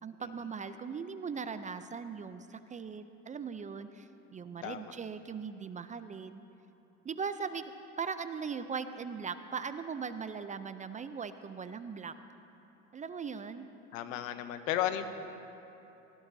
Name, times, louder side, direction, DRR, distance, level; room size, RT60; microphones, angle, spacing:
voice 1, 0.0-6.4 7.0-7.7 8.0-12.1 12.9-13.7, right 6 dB, 20° right, 11 dB, 0.4 m, -39 dB
voice 2, 13.9-15.1, left 11 dB, 80° left, 9 dB, 1.0 m, -33 dB
19.0 x 16.5 x 2.7 m, 2.9 s
supercardioid pair, 90°, 38 cm